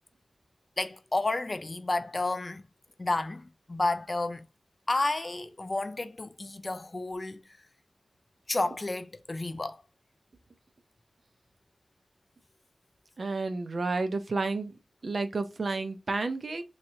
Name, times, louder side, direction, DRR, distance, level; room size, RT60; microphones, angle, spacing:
voice 1, 0.8-2.6 3.0-4.5 4.9-7.4 8.5-9.8, left 2 dB, 40° left, 0.4 m, -31 dB
voice 2, 13.2-14.7 15.0-16.6, right 3 dB, 60° right, 0.5 m, -31 dB
3.1 x 2.7 x 2.7 m
wide cardioid pair, 80°, 0 cm